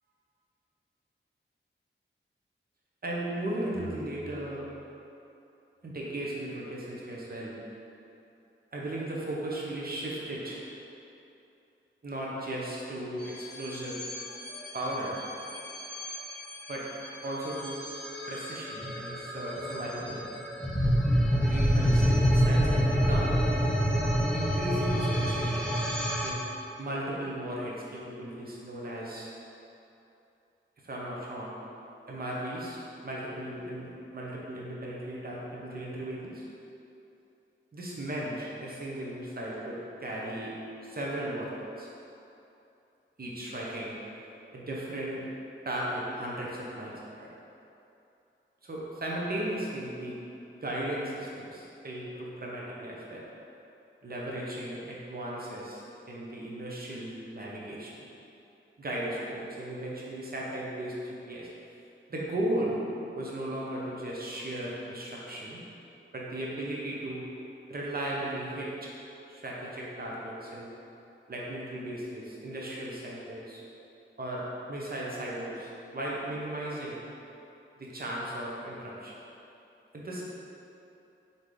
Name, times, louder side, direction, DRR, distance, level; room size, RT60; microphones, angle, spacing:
voice 1, 3.0-4.7 5.8-7.6 8.7-10.6 12.0-14.0 14.7-15.2 16.7-16.9 17.2-17.8 18.3-20.2 21.3-23.4 24.3-25.8 26.2-26.4 26.8-29.3 30.8-31.5 32.1-36.5 37.7-40.5 40.8-41.9 43.2-43.9 44.5-45.2 45.6-47.3 48.6-50.2 50.6-53.2 54.0-58.0 58.8-61.5 62.1-62.8 63.1-65.6 66.1-67.3 67.7-68.9 69.3-70.7 71.3-73.6 74.2-77.0 77.8-79.1 79.9-80.2, right 1 dB, 45° right, -5 dB, 0.9 m, -36 dB
sound 1, 13.2-26.3, equal, 5° left, 0.6 m, -28 dB
4.0 x 3.8 x 3.2 m, 2.8 s
cardioid pair, 55°, 21 cm